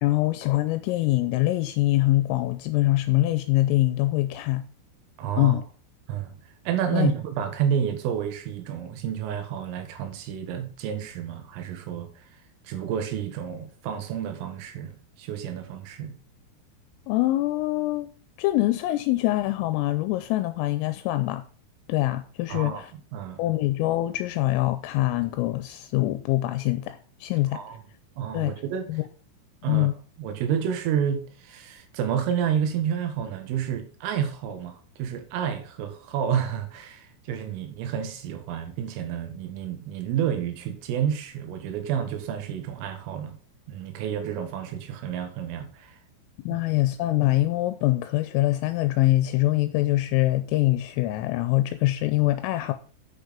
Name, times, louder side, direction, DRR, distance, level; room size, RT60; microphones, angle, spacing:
voice 1, 0.0-4.6 5.4-5.6 6.9-7.1 17.1-18.1 18.4-21.4 21.9-22.9 23.4-27.8 28.3-28.5 28.9-29.1 29.7-29.9 46.5-52.7, left 17 dB, 85° left, 3.1 m, -24 dB
voice 2, 5.2-5.6 6.1-6.3 6.7-12.1 12.7-14.9 15.2-16.2 22.5-22.8 23.1-23.4 27.5-27.8 28.2-28.9 29.6-29.9 30.2-43.4 43.7-46.0, right 8 dB, 80° right, 3.9 m, -30 dB
8.6 x 6.5 x 5.2 m
omnidirectional pair, 6.0 m